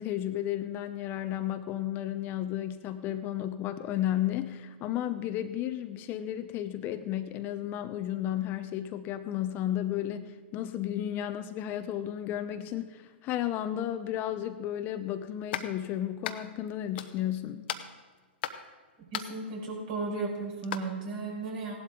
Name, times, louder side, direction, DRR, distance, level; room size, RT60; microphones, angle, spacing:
voice 1, 0.0-17.6, left 12 dB, 30° left, 9 dB, 0.7 m, -33 dB
sound 1, 15.5-15.7 16.2-16.7 17.0-17.4 17.7-18.7 19.1-19.4 20.6-20.8, left 10 dB, 55° left, 0.9 m, -36 dB
voice 2, 19.0-21.7, right 3 dB, 50° right, -1 dB, 4.9 m, -35 dB
17.0 x 11.5 x 3.8 m, 1.3 s
hypercardioid pair, 120°, 6 cm